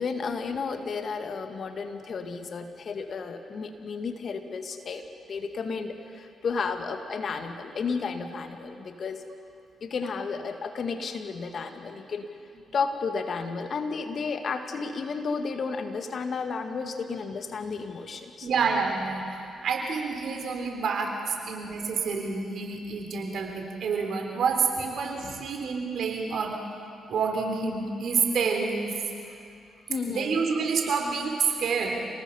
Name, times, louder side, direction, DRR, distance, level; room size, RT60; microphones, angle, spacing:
voice 1, 0.0-5.0 5.3-9.2 9.8-12.3 12.7-18.5 25.2-25.5 29.9-30.4, left 5 dB, 55° left, 6 dB, 1.9 m, -32 dB
voice 2, 18.4-26.6 27.1-28.9 30.1-32.0, right 5 dB, 65° right, 2 dB, 3.8 m, -28 dB
28.5 x 19.0 x 5.7 m, 2.5 s
hypercardioid pair, 45°, 0 cm